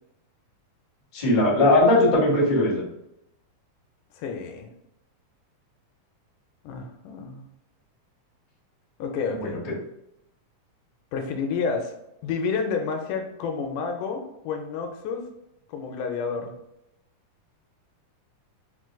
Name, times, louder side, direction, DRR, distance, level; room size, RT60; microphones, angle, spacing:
voice 1, 1.1-2.9 9.3-9.7, left 1 dB, 50° left, -7 dB, 0.4 m, -20 dB
voice 2, 4.1-4.7 6.6-7.4 9.0-9.6 11.1-11.9 12.2-15.2 15.7-16.5, left 5 dB, 80° left, 4 dB, 2.0 m, -30 dB
4.9 x 3.6 x 2.2 m, 0.83 s
omnidirectional pair, 3.7 m